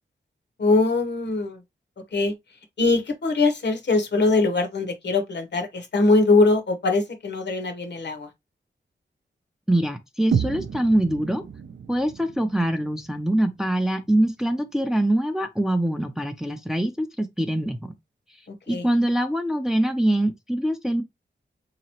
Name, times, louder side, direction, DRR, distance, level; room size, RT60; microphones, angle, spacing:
voice 1, 0.6-1.6 2.1-2.3 2.8-8.3 18.7-18.8, left 3 dB, 65° left, 0.9 m, -22 dB
voice 2, 9.7-11.4 11.9-17.9 18.7-21.0, right 1 dB, ahead, 0.4 m, -24 dB
sound 1, 10.3-14.3, right 7 dB, 70° right, 0.4 m, -31 dB
3.9 x 2.9 x 2.8 m
wide cardioid pair, 125°, 19 cm